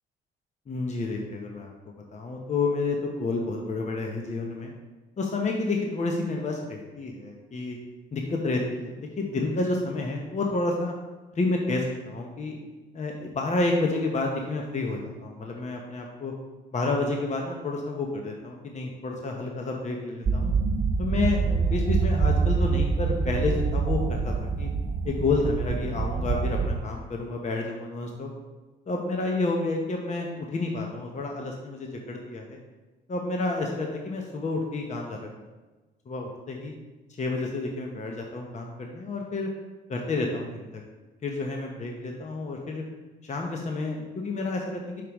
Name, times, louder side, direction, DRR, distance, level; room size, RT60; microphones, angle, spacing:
voice 1, 0.7-1.7 2.1-4.7 5.2-7.8 8.1-10.9 11.3-12.6 12.9-16.3 16.7-20.5 21.0-24.7 25.0-28.3 28.9-32.6 33.1-35.5 36.1-36.7 37.2-39.5 39.9-40.7 41.2-42.8 43.2-45.0, left 3 dB, 35° left, 1 dB, 0.8 m, -30 dB
sound 1, 20.3-26.8, right 4 dB, 35° right, 0.5 m, -25 dB
6.6 x 5.1 x 3.0 m, 1.2 s
cardioid pair, 90°, 20 cm